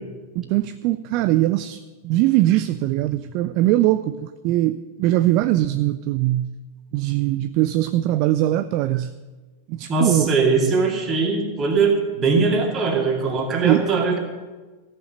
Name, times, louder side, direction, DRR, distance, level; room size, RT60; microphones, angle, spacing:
voice 1, 0.4-6.5 6.9-9.1 9.7-10.3 13.6-13.9, right 15 dB, 45° right, 13 dB, 0.4 m, -21 dB
voice 2, 9.9-14.2, right 4 dB, 25° right, 2 dB, 2.3 m, -21 dB
14.5 x 6.7 x 8.1 m, 1.3 s
figure-of-eight pair, 90°, 0 cm